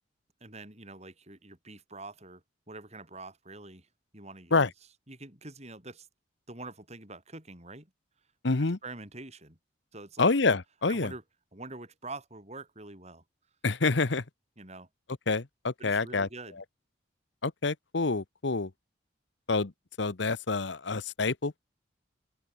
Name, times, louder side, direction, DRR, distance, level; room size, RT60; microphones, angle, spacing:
voice 1, 0.4-3.9 4.1-4.7 5.1-6.1 6.5-7.9 8.8-9.6 9.9-10.3 10.9-11.2 11.5-13.2 14.6-14.9 15.8-16.6, right 2 dB, 35° right, 6.0 m, -45 dB
voice 2, 8.4-8.8 10.2-11.1 13.6-14.2 15.3-16.3 17.4-18.7 19.5-19.7 20.0-21.5, left 3 dB, 65° left, 1.0 m, -27 dB
head